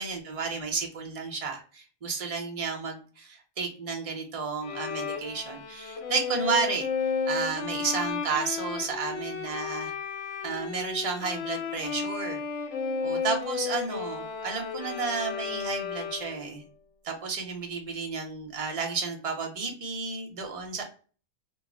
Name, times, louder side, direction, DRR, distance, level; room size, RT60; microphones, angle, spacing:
voice 1, 0.0-6.9 7.3-9.9 10.4-12.4 13.0-16.6 17.0-20.8, right 5 dB, 40° right, 3 dB, 0.6 m, -32 dB
Bowed string instrument, 4.6-16.5, left 6 dB, 80° left, 0.9 m, -33 dB
2.3 x 2.0 x 3.6 m, 0.38 s
omnidirectional pair, 1.2 m